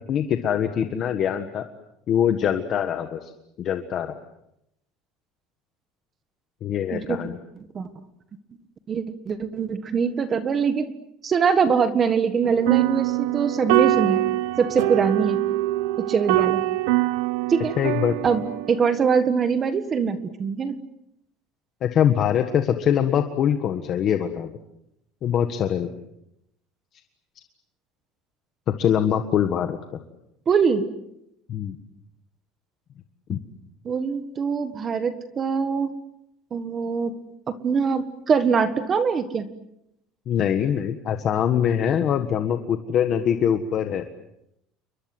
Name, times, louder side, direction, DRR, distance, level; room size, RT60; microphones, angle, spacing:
voice 1, 0.1-1.7 2.1-3.3 3.6-4.2 6.6-7.4 17.8-18.1 21.8-24.5 25.2-25.9 28.7-30.0 31.5-31.7 33.3-33.4 40.3-44.1, left 9 dB, 30° left, 7 dB, 1.6 m, -23 dB
voice 2, 8.9-10.9 11.2-14.2 14.6-15.4 16.0-16.6 17.5-17.8 18.2-18.4 18.7-20.8 30.5-30.9 33.8-35.9 36.5-37.1 37.5-39.5, right 6 dB, 20° right, 11 dB, 1.5 m, -23 dB
sound 1, 12.4-19.0, right 17 dB, 90° right, 1.1 m, -24 dB
29.5 x 23.5 x 7.9 m, 0.80 s
cardioid pair, 175°, 0 cm